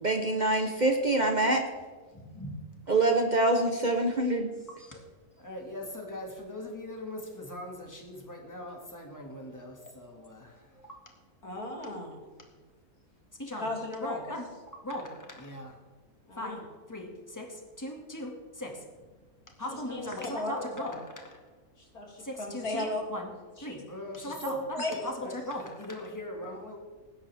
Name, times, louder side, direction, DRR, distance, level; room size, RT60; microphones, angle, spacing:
voice 1, 0.0-1.6 2.9-4.5, right 2 dB, 35° right, 4 dB, 1.1 m, -25 dB
voice 2, 2.1-2.6 4.8-5.0 5.4-10.9 13.4-13.7 14.0-14.5 14.8-15.8 16.4-16.6 16.9-18.8 19.6-21.4 22.2-23.3 23.6-26.8, left 1 dB, 10° left, 1 dB, 2.1 m, -39 dB
voice 3, 11.4-12.2 13.6-14.2 16.3-16.6 19.7-21.0 21.9-23.1 23.6-23.8 24.4-25.1, left 1 dB, 85° left, -1 dB, 3.4 m, -35 dB
19.0 x 10.0 x 3.5 m, 1.4 s
omnidirectional pair, 1.5 m